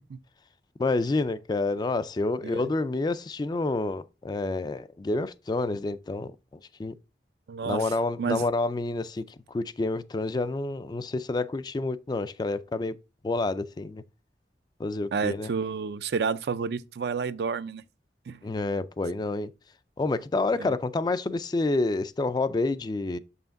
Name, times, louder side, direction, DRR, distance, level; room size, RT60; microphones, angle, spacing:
voice 1, 0.8-6.3 6.8-6.9 7.6-13.0 13.2-14.0 14.8-15.5 18.4-19.5 20.0-23.2, left 3 dB, 25° left, 0.3 m, -28 dB
voice 2, 7.5-7.9 8.2-8.4 15.1-17.8 18.3-18.4 20.6-20.7, right 5 dB, 60° right, 0.4 m, -30 dB
6.9 x 5.6 x 2.5 m
head